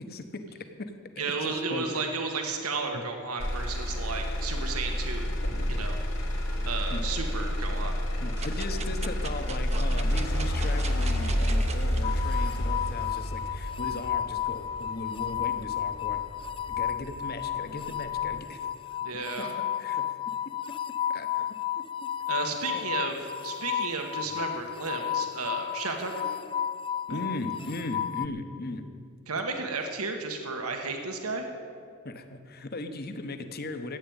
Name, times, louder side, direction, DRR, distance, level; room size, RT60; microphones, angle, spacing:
voice 1, 0.0-2.1 2.9-3.0 6.9-7.1 8.2-16.2 16.7-18.7 19.4-19.5 19.8-20.2 20.4-20.8 21.1-22.1 22.7-23.1 27.1-28.9 29.7-29.8 32.0-34.0, left 2 dB, 45° left, 8 dB, 1.0 m, -38 dB
voice 2, 1.2-5.3 5.7-6.0 6.7-8.0 19.0-19.5 22.3-26.3 27.1-27.2 29.3-31.5, right 4 dB, 85° right, 4 dB, 1.4 m, -33 dB
Motor vehicle (road), 3.4-17.4 17.9-18.4, equal, 75° left, 3.2 m, -30 dB
sound 1, 8.4-12.0 12.6-12.7, right 5 dB, 30° right, 0.7 m, -41 dB
sound 2, 12.0-28.3, left 10 dB, 25° left, 0.3 m, -32 dB
14.0 x 9.4 x 8.8 m, 2.3 s
head